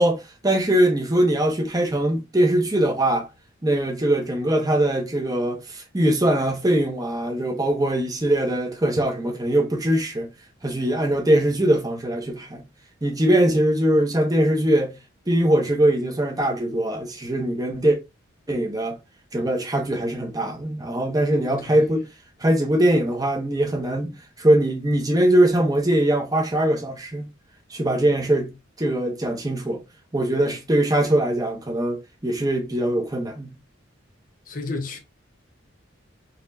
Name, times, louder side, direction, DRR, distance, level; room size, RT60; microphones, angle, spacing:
voice 1, 0.0-3.3 3.6-10.3 10.6-12.6 13.0-14.9 15.3-18.0 18.5-19.0 19.3-22.0 22.4-24.1 24.4-27.3 27.7-28.5 28.8-29.8 30.1-33.5, right 1 dB, 20° right, 0.9 m, -21 dB
voice 2, 21.3-21.8 34.5-35.0, left 3 dB, 40° left, 0.8 m, -32 dB
4.1 x 3.1 x 2.6 m
head